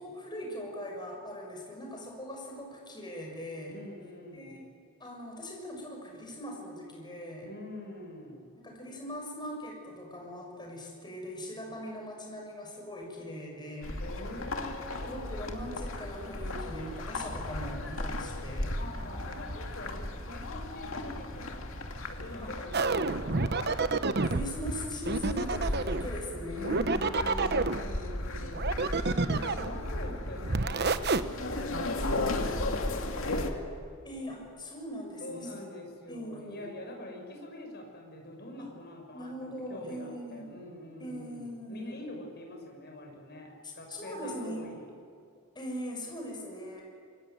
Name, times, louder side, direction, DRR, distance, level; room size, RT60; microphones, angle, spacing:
voice 1, 0.0-3.8 4.3-4.7 5.0-7.5 8.6-14.0 15.0-18.7 22.4-22.5 24.2-26.8 29.1-29.7 34.0-35.5 36.1-36.8 38.6-38.7 39.1-40.6 41.0-42.0 43.6-44.7 45.5-46.8, equal, 20° left, 0 dB, 6.4 m, -41 dB
voice 2, 3.7-4.6 7.4-8.5 14.0-15.3 18.8-23.7 26.5-28.6 29.3-33.7 35.2-44.8, left 1 dB, 50° left, 2 dB, 6.6 m, -44 dB
sound 1, 13.8-33.5, left 1 dB, 70° left, 2.5 m, -36 dB
sound 2, 22.7-24.5 25.1-26.1 26.6-27.8 28.5-29.8 30.4-31.2, right 3 dB, 50° right, 1.0 m, -28 dB
26.5 x 24.0 x 9.4 m, 2.4 s
head